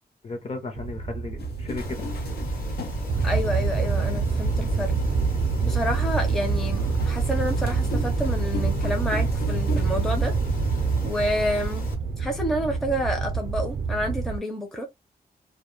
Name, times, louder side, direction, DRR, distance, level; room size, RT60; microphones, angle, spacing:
voice 1, 0.2-2.4, left 3 dB, 40° left, 0.7 m, -35 dB
sound 1, 0.8-14.4, right 5 dB, 55° right, 0.5 m, -26 dB
sound 2, 1.4-3.9 4.6-4.7 7.0-10.0, left 3 dB, 80° left, 0.6 m, -37 dB
sound 3, 1.8-11.9, equal, 55° left, 1.1 m, -35 dB
voice 2, 3.2-4.9 5.6-10.3 11.0-11.9 12.2-14.9, equal, ahead, 0.5 m, -29 dB
2.2 x 2.1 x 3.0 m
wide cardioid pair, 165°, 17 cm